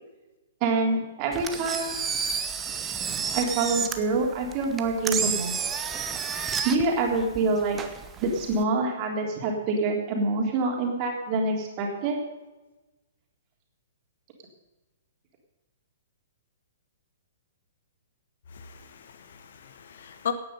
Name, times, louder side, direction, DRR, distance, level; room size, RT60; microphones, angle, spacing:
voice 1, 0.6-2.0 3.3-5.6 6.6-7.8 8.2-12.2, right 3 dB, 30° right, 1 dB, 3.5 m, -26 dB
Engine, 1.3-8.6, right 6 dB, 15° right, 1.1 m, -31 dB
voice 2, 18.5-20.3, left 8 dB, 55° left, 10 dB, 1.3 m, -36 dB
17.0 x 9.5 x 5.5 m, 1.1 s
figure-of-eight pair, 115°, 0 cm